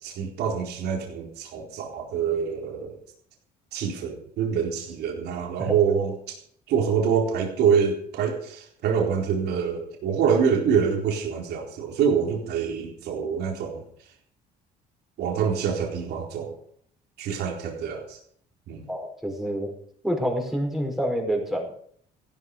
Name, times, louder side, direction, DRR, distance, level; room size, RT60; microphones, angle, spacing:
voice 1, 0.0-3.0 3.7-6.4 6.7-13.8 15.2-16.5 17.2-18.2 18.7-18.8, right 7 dB, 75° right, 0 dB, 4.1 m, -25 dB
voice 2, 18.9-19.7 20.0-21.8, equal, ahead, 1 dB, 5.4 m, -27 dB
15.5 x 12.5 x 5.5 m, 0.64 s
cardioid pair, 110°, 17 cm